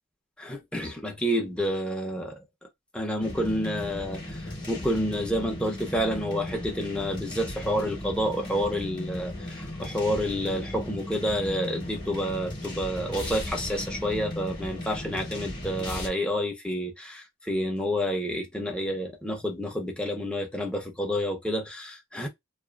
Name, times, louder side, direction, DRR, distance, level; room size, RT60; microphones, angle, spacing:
voice 1, 0.4-2.4 2.9-22.3, equal, 5° left, 0.7 m, -29 dB
sound 1, 3.2-16.1, left 1 dB, 20° left, 1.0 m, -36 dB
2.6 x 2.4 x 2.3 m
head